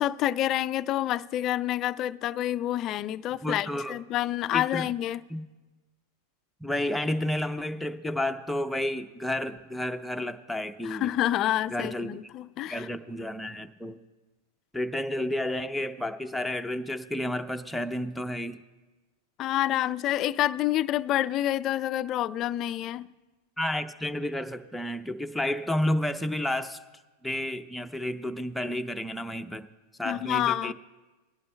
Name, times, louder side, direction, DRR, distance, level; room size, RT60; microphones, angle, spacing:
voice 1, 0.0-5.2 10.8-12.9 19.4-23.1 30.0-30.7, left 13 dB, 40° left, 0.3 m, -28 dB
voice 2, 3.4-4.0 4.5-4.9 5.3-5.4 6.6-11.1 11.7-12.2 12.7-14.0 14.7-18.6 23.6-26.8 27.2-29.7 30.0-30.7, left 1 dB, 5° left, 0.6 m, -31 dB
21.0 x 11.0 x 2.2 m
hypercardioid pair, 100°, 0 cm